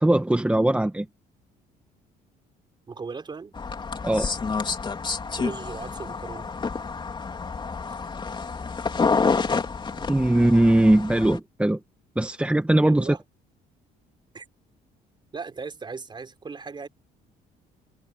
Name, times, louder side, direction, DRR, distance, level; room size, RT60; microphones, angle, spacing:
voice 1, 0.0-1.1 4.0-4.3 10.1-11.8 12.1-13.1, right 1 dB, 5° right, 1.7 m, -20 dB
voice 2, 2.9-3.6 5.4-6.5 7.9-8.0 12.8-13.2 14.3-14.5 15.3-16.9, right 4 dB, 25° right, 4.0 m, -37 dB
sound 1, 3.5-11.4, left 4 dB, 30° left, 3.6 m, -28 dB
cardioid pair, 110°, 17 cm